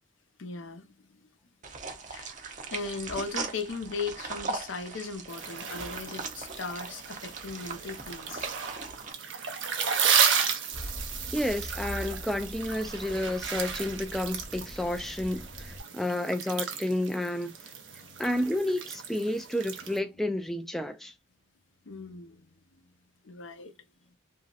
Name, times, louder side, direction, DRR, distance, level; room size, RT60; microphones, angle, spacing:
voice 1, 0.4-1.2 2.1-2.4 2.7-8.5 15.8-16.3 18.0-18.2 21.9-22.9 23.2-23.7, left 4 dB, 80° left, 0.6 m, -38 dB
sound 1, 1.6-9.1, right 4 dB, 40° right, 0.6 m, -39 dB
sound 2, 5.3-20.0, right 7 dB, 75° right, 0.7 m, -33 dB
Accelerating revving vroom, 10.7-15.8, left 1 dB, 30° left, 0.9 m, -42 dB
voice 2, 11.3-17.7 18.2-21.1, left 1 dB, ahead, 0.3 m, -31 dB
3.0 x 2.7 x 2.3 m
head